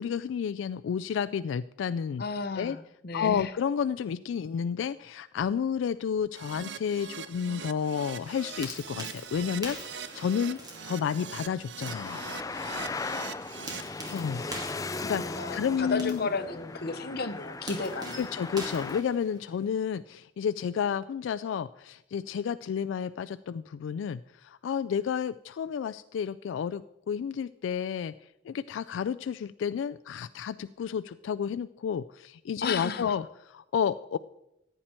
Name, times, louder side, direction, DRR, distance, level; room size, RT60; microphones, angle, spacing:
voice 1, 0.0-2.2 2.5-2.8 3.1-12.2 14.1-14.4 15.0-16.2 18.1-28.1 28.4-34.2, left 7 dB, 85° left, 13 dB, 0.3 m, -31 dB
voice 2, 2.2-3.5 14.1-14.6 15.2-18.3 32.6-33.2, left 4 dB, 55° left, 10 dB, 0.8 m, -34 dB
Keyboard (musical), 6.3-13.8, right 7 dB, 65° right, 0.6 m, -42 dB
sound 1, 8.3-19.7, right 1 dB, 20° right, 2.2 m, -45 dB
Traffic noise roadway noise, 11.8-19.0, left 3 dB, 20° left, 0.4 m, -37 dB
14.5 x 9.0 x 4.4 m, 0.87 s
head